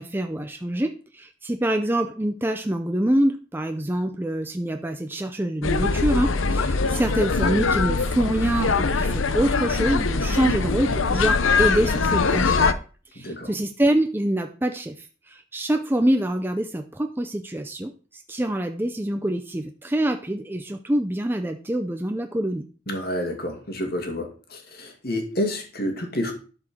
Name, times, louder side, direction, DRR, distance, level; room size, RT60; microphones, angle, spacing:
voice 1, 0.0-12.7 13.1-22.7, right 1 dB, 10° right, 6 dB, 0.5 m, -25 dB
sound 1, 5.6-12.7, left 4 dB, 80° left, 0.8 m, -22 dB
voice 2, 13.2-13.5 22.9-26.3, left 1 dB, 50° left, 3 dB, 2.3 m, -29 dB
12.0 x 5.0 x 6.2 m, 0.38 s
head